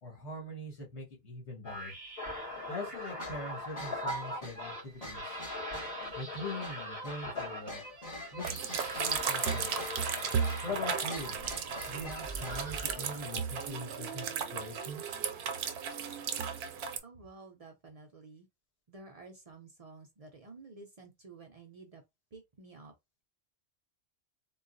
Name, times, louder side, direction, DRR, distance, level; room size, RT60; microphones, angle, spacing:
voice 1, 0.0-1.9 2.7-5.4 6.1-7.8 8.3-9.7 10.6-11.4 11.9-15.2, left 1 dB, 75° left, 1.7 m, -42 dB
sound 1, 1.6-13.7, left 1 dB, 55° left, 2.1 m, -41 dB
sound 2, 3.2-12.7, left 1 dB, 35° left, 1.3 m, -46 dB
sound 3, 8.4-17.0, right 7 dB, 70° right, 0.8 m, -35 dB
voice 2, 17.0-18.5 18.9-22.0 22.3-22.9, right 3 dB, 50° right, 0.5 m, -52 dB
3.8 x 2.3 x 2.5 m
omnidirectional pair, 1.1 m